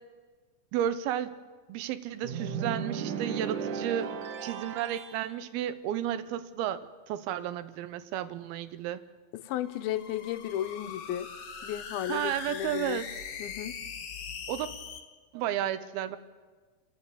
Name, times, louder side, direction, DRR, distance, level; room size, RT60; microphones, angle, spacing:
voice 1, 0.7-1.3 1.7-6.8 7.1-9.0 12.1-13.1 14.5-14.7 15.3-16.2, right 11 dB, 90° right, 13 dB, 2.7 m, -32 dB
sound 1, 2.2-5.2, right 6 dB, 65° right, 2.2 m, -35 dB
voice 2, 9.3-11.3 11.6-13.0 13.4-13.8, left 11 dB, 85° left, 11 dB, 2.6 m, -34 dB
sound 2, 9.6-15.0, left 6 dB, 65° left, 3.0 m, -41 dB
30.0 x 10.5 x 8.2 m, 1.5 s
omnidirectional pair, 4.3 m